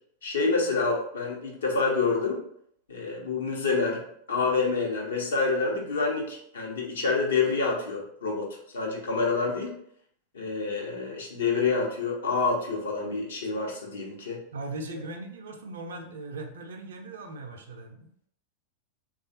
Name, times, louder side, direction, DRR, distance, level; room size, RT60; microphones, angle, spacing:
voice 1, 0.2-2.4 2.9-8.5 8.7-9.7 10.3-14.4, left 4 dB, 65° left, -1 dB, 0.8 m, -27 dB
voice 2, 14.5-18.3, right 2 dB, 65° right, 5 dB, 0.4 m, -39 dB
3.3 x 2.3 x 2.7 m, 0.67 s
figure-of-eight pair, 90°, 0 cm